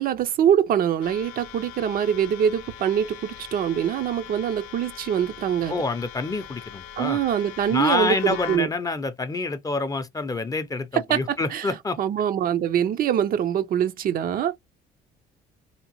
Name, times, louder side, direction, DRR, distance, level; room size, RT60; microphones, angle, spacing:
voice 1, 0.0-5.7 7.0-8.7 11.1-11.7 12.0-14.6, right 9 dB, 60° right, 0.5 m, -24 dB
sound 1, 1.0-8.6, left 9 dB, 90° left, 0.6 m, -41 dB
voice 2, 5.7-7.2 7.7-12.0, left 3 dB, 20° left, 0.5 m, -27 dB
2.8 x 2.0 x 2.9 m
supercardioid pair, 80°, 17 cm